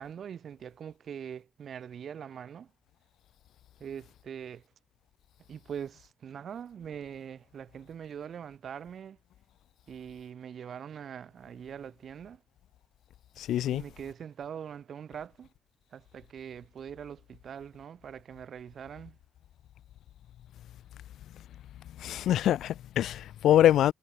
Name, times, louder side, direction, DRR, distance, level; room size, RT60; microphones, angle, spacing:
voice 1, 0.0-2.7 3.8-4.6 5.5-9.2 9.9-12.4 13.7-15.5 15.9-19.2, right 8 dB, 55° right, 5.0 m, -42 dB
voice 2, 13.4-13.8 22.0-23.9, left 12 dB, 75° left, 1.2 m, -24 dB
cardioid pair, 90°, 0 cm